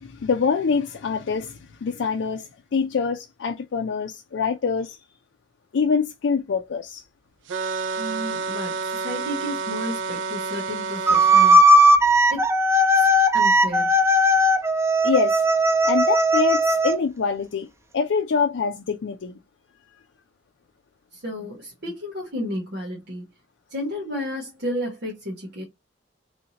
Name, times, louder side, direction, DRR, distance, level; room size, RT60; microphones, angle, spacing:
voice 1, 0.0-5.0 5.7-7.0 15.0-15.4 15.8-17.7 17.9-19.4, left 5 dB, 80° left, 0.4 m, -25 dB
sound 1, 7.5-11.6, right 4 dB, 90° right, 0.4 m, -29 dB
voice 2, 8.0-11.6 12.3-12.5 12.9-13.1 13.3-14.0 21.1-23.3 23.7-25.6, equal, 65° right, 1.1 m, -32 dB
sound 2, 11.1-17.0, equal, 15° right, 0.3 m, -17 dB
3.4 x 2.8 x 2.8 m
head